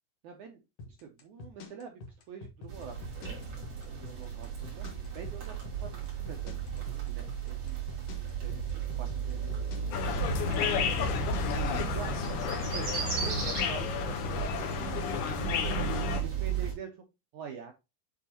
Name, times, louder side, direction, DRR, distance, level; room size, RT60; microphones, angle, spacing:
voice 1, 0.2-0.6 0.9-2.0 2.3-4.9 5.1-8.6 9.0-10.0 10.4-11.1 11.5-11.6 11.9-12.1 12.7-15.8 16.1-16.9 17.3-17.7, right 6 dB, 75° right, 3 dB, 1.8 m, -46 dB
sound 1, 0.8-13.6, left 3 dB, 60° left, 1.8 m, -46 dB
sound 2, 2.7-16.7, right 6 dB, 45° right, 3.7 m, -35 dB
sound 3, 9.9-16.2, left 7 dB, 85° left, 3.1 m, -32 dB
8.6 x 4.0 x 2.9 m, 0.24 s
omnidirectional pair, 4.5 m